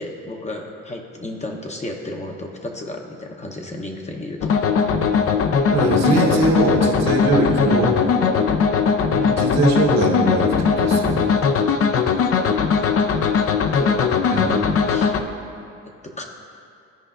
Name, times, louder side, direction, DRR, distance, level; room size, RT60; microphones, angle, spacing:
voice 1, 0.0-4.5 13.8-14.2 14.7-15.1 16.0-16.2, left 1 dB, 25° left, 1 dB, 0.8 m, -33 dB
sound 1, 4.4-15.2, left 6 dB, 50° left, 0.5 m, -19 dB
voice 2, 5.7-8.0 9.1-11.3 14.3-14.5, right 3 dB, 60° right, -1 dB, 1.4 m, -21 dB
13.5 x 4.9 x 2.5 m, 2.5 s
cardioid pair, 90°, 30 cm